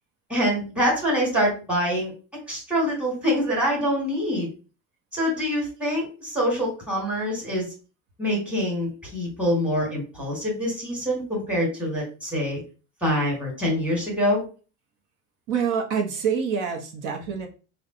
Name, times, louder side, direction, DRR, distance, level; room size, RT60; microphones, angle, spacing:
voice 1, 0.3-2.1 2.5-4.5 5.1-7.7 8.2-12.6 13.0-14.4, equal, 5° right, -2 dB, 1.6 m, -25 dB
voice 2, 15.5-17.5, right 6 dB, 65° right, 3 dB, 1.0 m, -26 dB
5.1 x 2.3 x 3.7 m, 0.35 s
cardioid pair, 170°, 34 cm